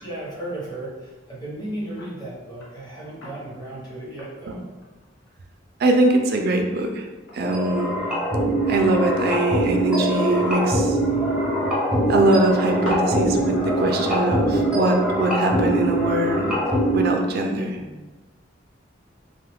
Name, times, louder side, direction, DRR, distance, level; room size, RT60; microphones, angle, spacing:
voice 1, 0.0-4.6, right 1 dB, 20° left, -6 dB, 0.9 m, -35 dB
sound 1, 1.2-1.3 1.9-2.1 2.5-3.6 4.0-5.4 5.7-5.8 6.2-8.3 8.6-9.0 9.3-9.4 9.6-9.7 10.7-11.8 12.0-12.1 12.4-15.8 16.2-16.3, equal, 85° left, 0.8 m, -39 dB
voice 2, 5.8-7.1 7.3-7.9 8.7-11.4 12.1-16.6 16.9-18.1, right 2 dB, 50° right, 3 dB, 0.4 m, -22 dB
sound 2, 7.4-17.1, right 1 dB, 5° right, 0.6 m, -23 dB
2.8 x 2.3 x 3.3 m, 1.2 s
head